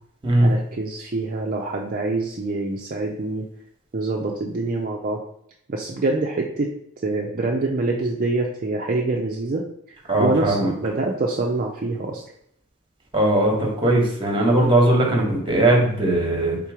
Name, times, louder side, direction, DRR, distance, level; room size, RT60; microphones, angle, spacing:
voice 1, 0.4-3.5 3.9-5.2 5.7-6.7 7.0-9.6 10.2-12.2, right 2 dB, 40° right, -1 dB, 0.5 m, -25 dB
voice 2, 10.1-10.7 13.1-16.6, right 1 dB, 20° right, 0 dB, 1.1 m, -19 dB
3.7 x 3.0 x 4.8 m, 0.71 s
head